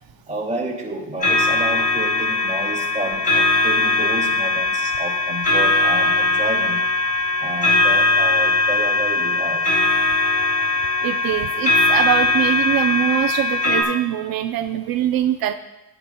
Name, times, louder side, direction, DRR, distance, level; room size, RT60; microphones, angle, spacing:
voice 1, 0.3-6.8 7.4-9.7, right 2 dB, 20° right, -2 dB, 2.2 m, -30 dB
sound 1, 1.2-13.8, left 2 dB, 25° left, 4.0 m, -20 dB
voice 2, 11.0-15.5, right 11 dB, 75° right, 7 dB, 0.6 m, -23 dB
18.5 x 10.0 x 2.2 m, 1.0 s
cardioid pair, 160°, 35 cm